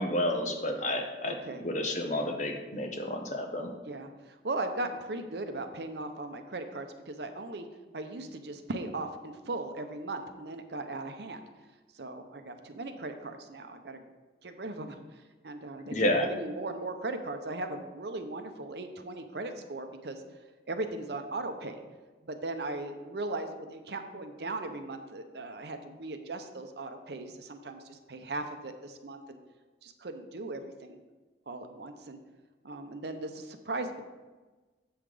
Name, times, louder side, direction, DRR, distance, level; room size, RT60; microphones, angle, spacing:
voice 1, 0.0-1.3 1.6-3.7 15.9-16.3, left 1 dB, 40° left, 3 dB, 1.0 m, -30 dB
voice 2, 1.2-1.7 3.9-7.7 7.9-11.4 11.9-14.0 14.4-15.0 15.4-20.2 20.7-21.8 22.2-29.4 29.8-31.0 31.5-32.2 32.6-34.0, right 2 dB, 65° right, 7 dB, 0.7 m, -38 dB
7.9 x 5.7 x 4.9 m, 1.3 s
head